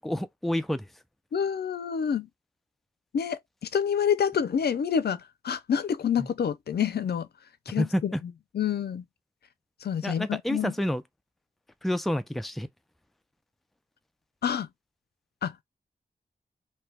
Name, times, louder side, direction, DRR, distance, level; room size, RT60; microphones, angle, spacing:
voice 1, 0.0-0.9 6.2-6.3 7.8-8.2 10.0-11.0 11.8-12.7, left 1 dB, ahead, 0.3 m, -29 dB
voice 2, 1.3-2.3 3.1-3.4 3.7-7.3 7.7-8.1 8.5-9.0 9.8-10.7 14.4-14.7 15.4-15.5, left 8 dB, 90° left, 0.4 m, -27 dB
2.6 x 2.2 x 3.3 m
wide cardioid pair, 85°, 16 cm